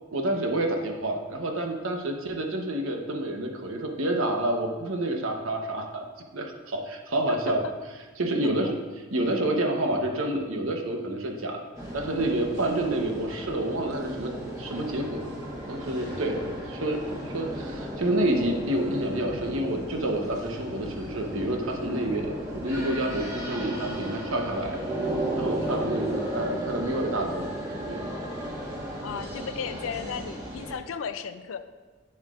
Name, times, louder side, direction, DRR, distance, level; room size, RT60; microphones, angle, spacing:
voice 1, 0.1-6.1 6.3-7.6 8.2-8.7 9.1-11.6 11.9-15.3 15.7-24.8 25.3-27.5 27.9-28.1, right 1 dB, 85° right, 3 dB, 1.0 m, -28 dB
sound 1, 11.7-30.7, right 1 dB, 15° right, 1.4 m, -35 dB
voice 2, 29.0-31.6, left 6 dB, 85° left, 11 dB, 0.4 m, -35 dB
8.8 x 7.3 x 2.5 m, 1.4 s
head